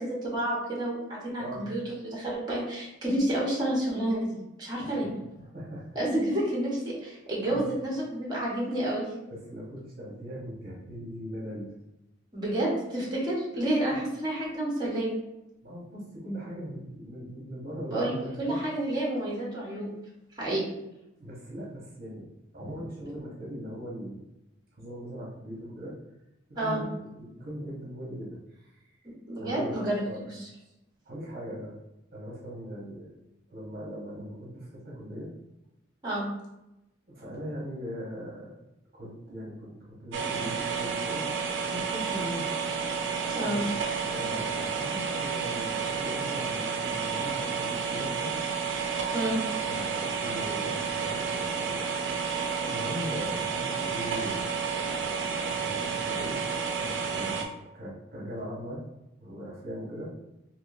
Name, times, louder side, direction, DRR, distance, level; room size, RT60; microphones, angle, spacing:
voice 1, 0.0-5.1 5.9-9.1 12.3-15.1 17.9-18.1 18.4-19.9 20.4-20.6 22.6-22.7 26.6-26.8 29.3-30.0 36.0-36.3 43.3-43.6 49.1-49.4, right 1 dB, 20° right, -4 dB, 1.0 m, -29 dB
voice 2, 5.4-5.9 7.5-7.6 9.3-11.7 13.9-14.0 15.6-18.6 20.4-20.5 21.2-24.3 24.8-25.9 26.5-29.0 29.4-30.2 31.0-31.8 32.1-33.1 33.5-35.3 37.1-38.5 38.9-41.3 41.6-42.5 43.4-43.7 44.1-48.3 49.6-54.7 55.0-56.4 56.7-58.8 59.2-60.1, equal, 50° right, -5 dB, 0.9 m, -40 dB
sound 1, 40.1-57.4, right 5 dB, 65° right, 0.5 m, -31 dB
3.6 x 2.8 x 2.6 m, 0.90 s
head